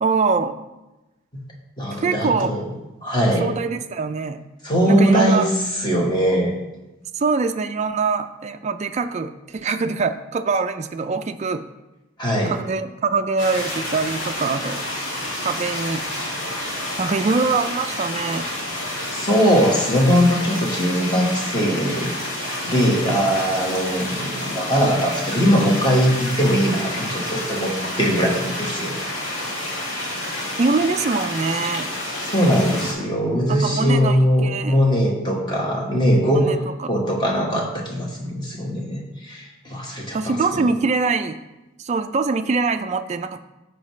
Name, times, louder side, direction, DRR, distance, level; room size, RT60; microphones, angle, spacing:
voice 1, 0.0-0.6 1.9-2.5 3.4-4.4 4.9-5.5 7.1-11.6 12.4-14.8 15.4-16.0 17.0-18.5 30.6-31.9 33.5-34.8 36.4-36.6 40.1-41.4 41.8-43.4, right 4 dB, 35° right, 7 dB, 0.3 m, -23 dB
voice 2, 1.8-2.6 3.0-3.5 4.6-5.5 5.8-6.5 12.2-12.5 19.1-22.1 22.6-29.0 32.2-40.7, equal, 25° left, -1 dB, 1.5 m, -20 dB
sound 1, 13.4-32.9, left 1 dB, 75° left, 2.7 m, -29 dB
13.5 x 4.6 x 3.2 m, 1.0 s
head